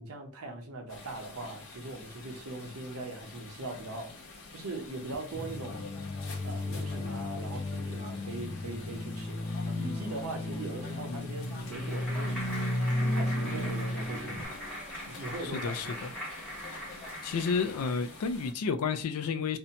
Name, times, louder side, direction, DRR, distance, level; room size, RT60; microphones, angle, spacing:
voice 1, 0.0-4.2 4.5-5.8 6.4-12.4 13.0-14.5 15.1-16.1, right 2 dB, 75° right, 0.7 m, -40 dB
sound 1, 0.9-18.5, left 3 dB, 65° left, 0.9 m, -48 dB
sound 2, 5.3-14.4, left 1 dB, 20° left, 0.5 m, -34 dB
Clapping, 10.9-18.1, equal, 5° left, 0.9 m, -41 dB
voice 2, 15.6-16.1 17.2-19.6, left 5 dB, 85° left, 0.4 m, -31 dB
2.6 x 2.1 x 2.7 m
head